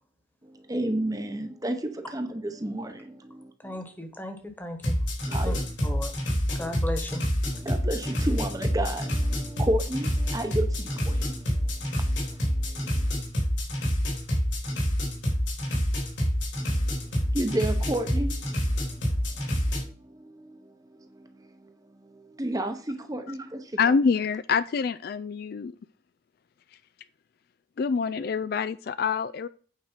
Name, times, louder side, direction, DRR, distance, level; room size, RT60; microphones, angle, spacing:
voice 1, 0.4-3.8 5.3-5.7 6.6-6.7 7.5-13.2 16.7-17.0 17.3-18.4 19.4-23.8, right 1 dB, 20° right, 0.8 m, -33 dB
voice 2, 3.6-5.0 5.4-5.5 5.8-6.1 6.6-7.2, left 1 dB, 10° left, 1.3 m, -35 dB
sound 1, 4.8-19.8, equal, 70° left, 3.4 m, -27 dB
voice 3, 23.8-25.8 27.8-29.5, left 5 dB, 50° left, 0.3 m, -26 dB
8.9 x 4.7 x 5.8 m
head